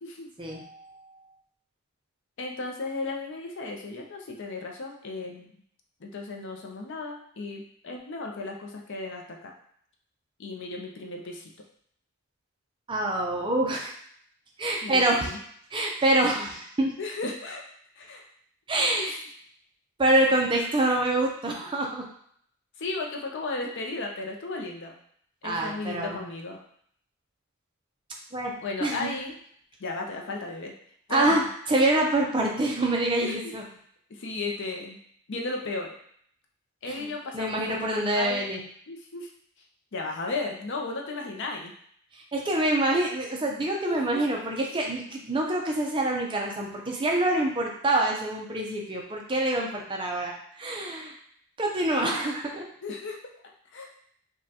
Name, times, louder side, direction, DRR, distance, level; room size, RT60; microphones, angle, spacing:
voice 1, 0.4-1.0 12.9-13.9 14.6-15.3 15.7-16.9 18.7-19.1 20.0-22.0 25.4-26.2 28.3-28.5 28.8-29.1 31.1-31.4 31.7-33.6 37.0-37.1 37.3-38.6 42.3-50.3 50.6-51.1 51.6-52.6, right 1 dB, 25° right, 0 dB, 0.5 m, -26 dB
voice 2, 2.4-5.6 6.0-9.5 10.4-11.5 14.8-15.4 17.0-17.6 17.9-18.2 18.9-19.2 22.8-25.0 25.4-26.6 28.6-29.4 29.8-30.7 31.1-31.5 33.2-33.5 34.1-35.0 35.3-35.9 36.8-38.4 38.9-39.3 39.9-41.7 43.8-44.3 52.1-52.4 52.8-53.2 53.7-53.9, left 3 dB, 55° left, 1 dB, 0.6 m, -35 dB
5.1 x 2.3 x 2.8 m, 0.64 s
head